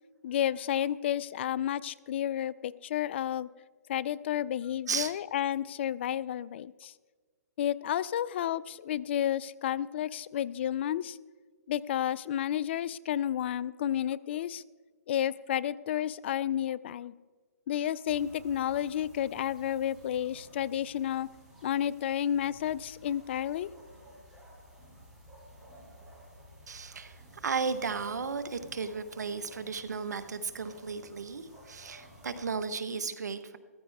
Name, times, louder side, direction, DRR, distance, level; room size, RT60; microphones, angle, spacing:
voice 1, 0.2-3.5 3.9-6.9 7.6-11.2 11.7-14.6 15.1-17.1 17.7-21.3 21.6-23.7, left 10 dB, 40° left, 18 dB, 0.4 m, -31 dB
sound 1, 18.1-32.5, equal, 5° right, 3.2 m, -54 dB
voice 2, 26.7-33.6, right 5 dB, 75° right, 12 dB, 1.2 m, -35 dB
14.5 x 14.0 x 3.5 m, 1.4 s
hypercardioid pair, 150°, 9 cm